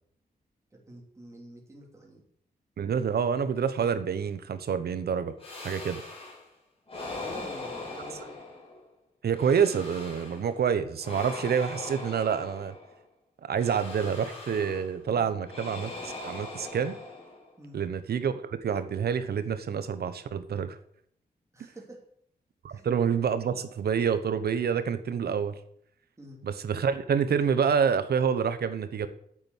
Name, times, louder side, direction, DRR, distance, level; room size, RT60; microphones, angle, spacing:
voice 1, 0.7-2.2 7.0-8.4 17.6-17.8 21.5-22.0 22.7-22.9 26.2-26.4, right 1 dB, 20° right, -2 dB, 3.2 m, -48 dB
voice 2, 2.8-5.3 5.6-6.0 9.2-12.8 13.4-17.0 17.7-20.8 22.6-25.6 26.4-29.1, right 7 dB, 85° right, 11 dB, 1.1 m, -27 dB
sound 1, 5.4-6.5 6.9-8.9 9.3-10.5 11.0-13.0 13.6-15.0 15.4-17.6, left 3 dB, 40° left, 4.1 m, -40 dB
8.9 x 8.7 x 8.1 m, 0.68 s
wide cardioid pair, 155°, 16 cm